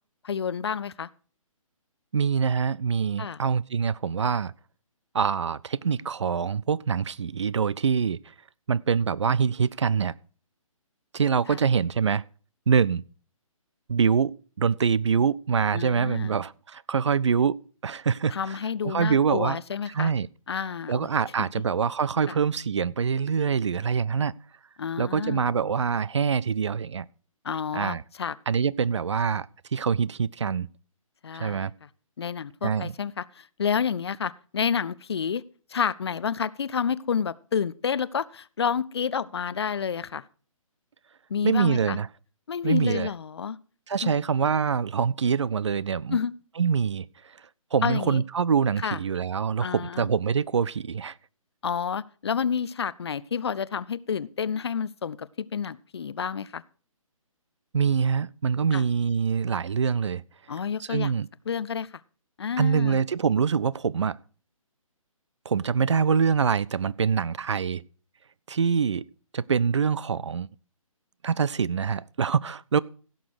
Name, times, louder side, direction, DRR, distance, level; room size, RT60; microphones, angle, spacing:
voice 1, 0.2-1.1 3.2-3.4 11.5-11.6 15.7-16.4 18.3-20.1 20.5-21.1 21.4-21.5 24.8-25.6 27.4-28.3 31.2-31.7 32.2-35.4 35.7-40.2 41.3-42.0 42.5-43.6 44.0-44.1 46.1-46.3 47.8-48.2 48.8-49.0 49.6-50.1 51.6-56.6 58.7-58.8 60.5-61.1 61.5-61.9 62.4-63.0, left 7 dB, 50° left, 0.5 m, -29 dB
voice 2, 2.1-4.5 5.1-8.2 8.7-10.1 11.1-12.2 12.7-13.0 13.9-14.3 14.6-17.6 17.8-18.6 18.8-19.6 19.9-20.3 20.9-24.3 25.0-27.1 27.7-28.0 28.5-29.5 29.7-30.7 31.3-31.7 32.6-32.9 41.4-42.1 42.6-43.1 43.9-46.2 46.6-47.1 47.7-51.1 57.7-60.2 60.8-61.3 62.6-64.2 65.5-67.8 68.5-69.0 69.3-70.5 71.2-72.8, right 6 dB, 55° right, 0.4 m, -25 dB
16.0 x 6.6 x 4.6 m
figure-of-eight pair, 140°, 18 cm